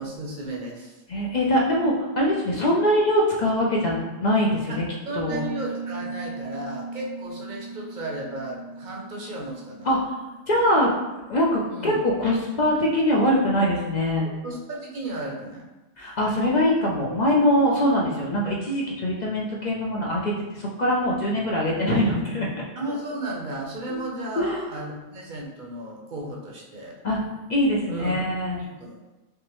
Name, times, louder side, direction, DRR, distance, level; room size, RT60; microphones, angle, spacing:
voice 1, 0.0-1.0 4.7-9.9 11.7-12.0 14.4-15.6 22.8-27.0 27.9-28.3 28.6-29.1, right 1 dB, 50° right, -2 dB, 0.8 m, -34 dB
voice 2, 1.1-4.8 5.1-5.4 9.9-10.1 10.5-10.9 11.3-14.3 16.0-22.5 23.9-24.0 24.4-24.7 27.0-27.2 27.5-28.6, equal, 50° left, -3 dB, 0.5 m, -23 dB
sound 1, 5.3-10.9, right 4 dB, 85° right, 1.3 m, -38 dB
3.5 x 3.0 x 3.0 m, 1.1 s
omnidirectional pair, 1.2 m